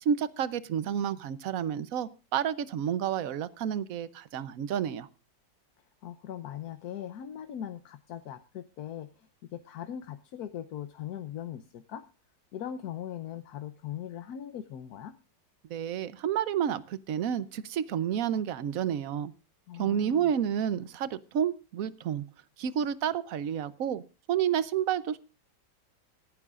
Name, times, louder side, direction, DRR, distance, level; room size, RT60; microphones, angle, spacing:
voice 1, 0.0-5.1 15.7-19.3 19.8-22.2 22.6-24.0 24.3-25.2, right 9 dB, 60° right, 17 dB, 1.0 m, -30 dB
voice 2, 6.0-12.0 12.5-15.1 19.7-20.3, left 10 dB, 65° left, 9 dB, 1.2 m, -40 dB
26.0 x 9.6 x 2.4 m, 0.31 s
omnidirectional pair, 2.0 m